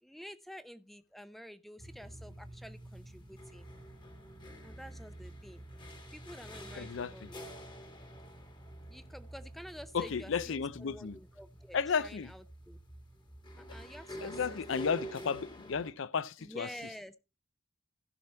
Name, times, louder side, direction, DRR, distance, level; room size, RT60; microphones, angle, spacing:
voice 1, 0.0-3.7 4.6-5.6 6.1-7.5 8.9-12.8 13.6-15.2 16.4-17.2, equal, ahead, 0.5 m, -50 dB
sound 1, 1.8-15.9, equal, 20° left, 1.4 m, -48 dB
voice 2, 6.7-7.3 9.9-11.2 11.7-12.3 14.2-16.7, left 6 dB, 60° left, 0.5 m, -33 dB
15.5 x 5.9 x 4.3 m
head